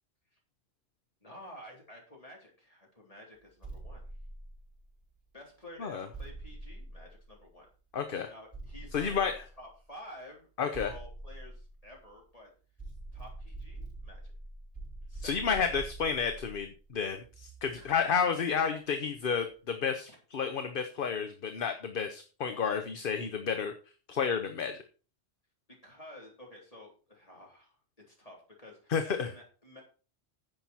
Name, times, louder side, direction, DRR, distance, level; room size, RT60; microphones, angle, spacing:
voice 1, 1.2-4.0 5.3-7.7 8.3-12.5 13.1-14.3 15.1-15.8 17.7-18.0 25.8-27.8 28.1-28.9 29.2-29.8, left 1 dB, 30° left, -1 dB, 3.8 m, -51 dB
sound 1, 3.6-5.1 6.1-7.7 8.5-9.9 10.7-12.3 12.8-18.1, right 2 dB, 5° left, 4.9 m, -45 dB
voice 2, 7.9-8.3 8.9-9.3 10.6-10.9 15.2-23.7 24.1-24.8 28.9-29.3, left 6 dB, 55° left, 7 dB, 1.0 m, -31 dB
10.5 x 7.7 x 4.3 m, 0.37 s
omnidirectional pair, 1.2 m